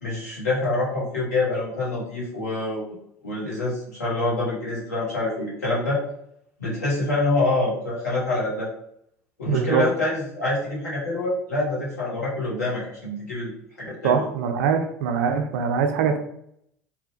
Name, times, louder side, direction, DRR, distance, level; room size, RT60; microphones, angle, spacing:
voice 1, 0.0-3.0 3.2-6.0 6.6-8.7 9.4-14.2, left 2 dB, 85° left, -6 dB, 0.9 m, -26 dB
voice 2, 9.5-9.8 14.0-16.2, right 6 dB, 65° right, 6 dB, 0.4 m, -23 dB
2.6 x 2.1 x 2.6 m, 0.73 s
figure-of-eight pair, 65°, 9 cm